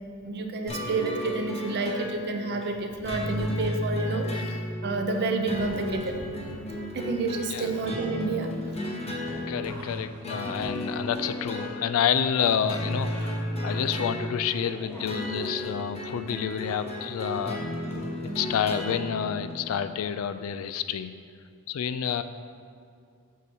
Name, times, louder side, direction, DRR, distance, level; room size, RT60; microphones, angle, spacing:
voice 1, 0.2-6.2 6.9-8.5, right 3 dB, 50° right, 5 dB, 0.5 m, -29 dB
sound 1, 0.7-19.9, left 1 dB, 30° left, 0.8 m, -34 dB
sound 2, 2.7-4.2 5.4-6.8 7.1-12.1 12.4-14.0 14.4-15.6 16.6-18.4 18.9-19.0, equal, 10° left, 1.1 m, -45 dB
voice 2, 9.5-17.6 18.2-21.2 21.7-22.2, left 8 dB, 65° left, 11 dB, 0.3 m, -29 dB
8.1 x 2.8 x 6.1 m, 2.3 s
head